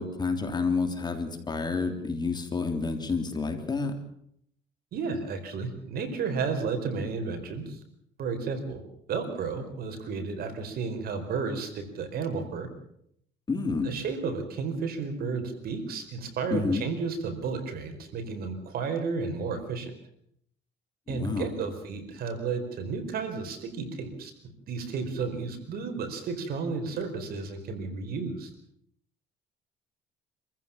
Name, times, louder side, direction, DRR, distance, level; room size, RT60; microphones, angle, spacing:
voice 1, 0.0-3.9 13.5-14.0 16.5-16.9 21.1-21.6, left 4 dB, 25° left, 6 dB, 3.3 m, -29 dB
voice 2, 4.9-7.8 8.2-8.8 9.1-12.7 13.8-19.9 21.1-24.3 24.7-28.5, right 5 dB, 65° right, 7 dB, 4.7 m, -32 dB
27.0 x 15.0 x 7.2 m, 0.71 s
cardioid pair, 110°, 17 cm